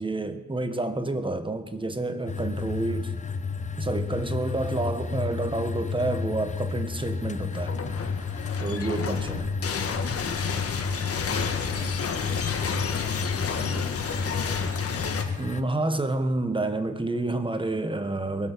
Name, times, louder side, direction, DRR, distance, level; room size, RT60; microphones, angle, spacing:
voice 1, 0.0-3.1 3.8-7.8 8.6-9.5 15.4-18.5, right 2 dB, 15° right, 8 dB, 1.4 m, -29 dB
sound 1, 2.3-15.6, left 5 dB, 25° left, 1.0 m, -31 dB
sound 2, 7.4-15.2, left 6 dB, 50° left, 1.7 m, -31 dB
voice 2, 8.8-9.4 12.7-14.9, left 4 dB, 90° left, -2 dB, 4.8 m, -45 dB
22.5 x 8.1 x 6.3 m, 1.1 s
cardioid pair, 90°, 30 cm